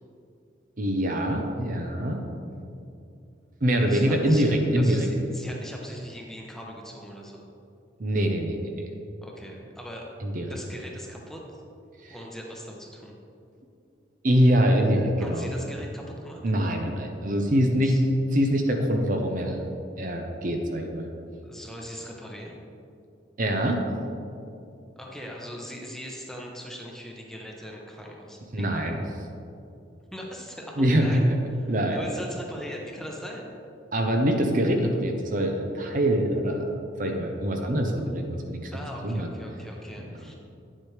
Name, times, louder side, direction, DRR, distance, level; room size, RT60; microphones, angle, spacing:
voice 1, 0.8-2.2 3.6-5.1 8.0-8.6 10.2-10.5 12.0-12.1 14.2-15.5 16.4-18.0 18.3-19.6 20.0-21.1 23.4-23.8 28.5-29.0 30.8-31.2 31.7-32.0 33.9-36.6 37.0-38.7 39.0-39.3, equal, 45° right, 3 dB, 0.7 m, -24 dB
voice 2, 3.8-4.5 4.7-7.5 9.2-10.1 10.5-11.6 12.1-13.1 15.2-16.4 17.8-18.0 21.4-22.6 25.0-28.8 30.1-31.3 31.9-33.5 38.7-40.3, equal, ahead, -1 dB, 0.8 m, -40 dB
9.3 x 7.5 x 3.3 m, 2.6 s
head